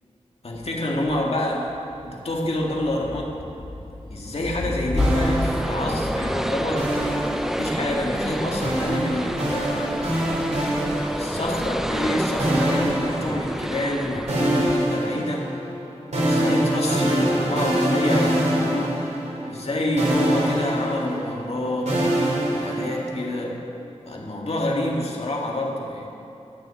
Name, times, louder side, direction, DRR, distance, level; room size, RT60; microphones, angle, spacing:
voice 1, 0.4-1.7 2.0-3.3 4.1-7.0 7.6-10.6 11.2-15.5 16.2-19.1 19.4-22.0 22.5-23.6 24.1-26.1, left 1 dB, 60° left, -1 dB, 2.0 m, -27 dB
Thunder / Rain, 0.5-8.8, left 2 dB, 45° left, 1.2 m, -32 dB
sound 1, 5.0-15.0, equal, 5° right, 0.5 m, -29 dB
sound 2, 5.0-6.2 6.8-8.0 8.6-11.7 12.4-13.9 14.3-19.7 20.0-23.2, right 1 dB, 85° right, 3.5 m, -25 dB
12.5 x 6.5 x 9.3 m, 2.9 s
wide cardioid pair, 70°, 12 cm